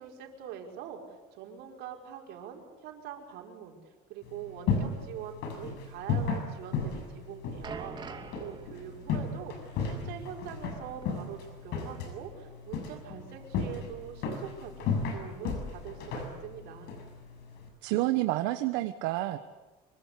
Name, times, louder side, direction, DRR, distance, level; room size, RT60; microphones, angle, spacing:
voice 1, 0.0-3.8 4.1-16.9, right 8 dB, 70° right, 1 dB, 5.4 m, -44 dB
sound 1, 4.2-17.7, left 5 dB, 65° left, 6.5 m, -35 dB
sound 2, 7.2-11.9 12.2-12.3 13.1-13.2, right 5 dB, 25° right, 2.6 m, -47 dB
voice 2, 17.8-19.4, right 17 dB, 90° right, 9 dB, 1.2 m, -29 dB
26.0 x 23.0 x 8.4 m, 1.2 s
cardioid pair, 150°, 18 cm